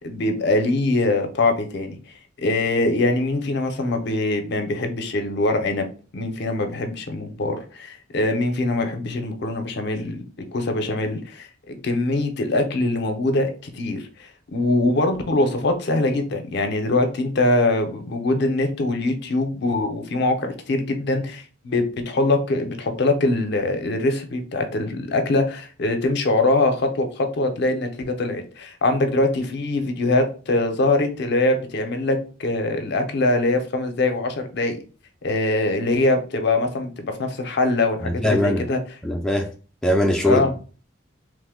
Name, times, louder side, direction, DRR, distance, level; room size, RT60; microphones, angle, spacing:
voice 1, 0.0-2.0 2.4-5.9 6.1-10.2 10.5-27.9 28.2-34.8 35.2-38.8 40.2-40.5, left 2 dB, 60° left, 0.5 m, -23 dB
voice 2, 38.0-38.6 39.0-39.5 39.8-40.6, left 1 dB, 5° left, 0.3 m, -21 dB
3.0 x 2.1 x 3.5 m
head